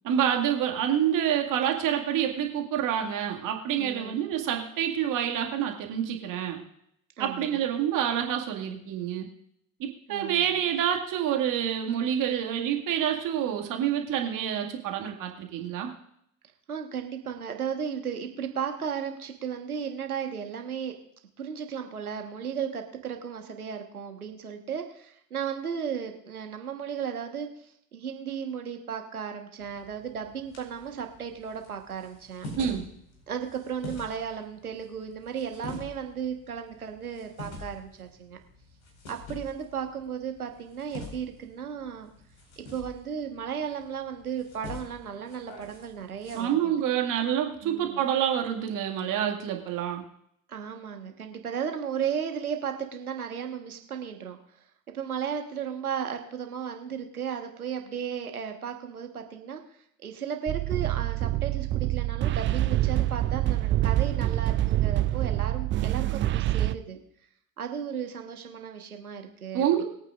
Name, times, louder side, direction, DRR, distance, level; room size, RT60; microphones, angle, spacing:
voice 1, 0.0-6.6 7.2-9.3 9.8-15.9 32.6-32.9 46.3-50.0 69.5-69.8, right 9 dB, 45° right, 3 dB, 2.1 m, -27 dB
voice 2, 3.8-4.2 7.2-7.6 10.1-10.6 16.7-20.9 21.4-32.5 33.3-38.4 39.1-42.1 42.6-46.8 47.6-48.0 50.5-54.4 54.9-59.6 60.0-67.0 67.6-69.8, right 7 dB, 85° right, 5 dB, 1.5 m, -35 dB
sound 1, 29.6-46.4, left 2 dB, 55° left, 5.0 m, -46 dB
sound 2, 60.5-66.8, right 14 dB, 30° right, 0.5 m, -26 dB
22.0 x 8.8 x 2.5 m, 0.72 s
figure-of-eight pair, 70°, 43 cm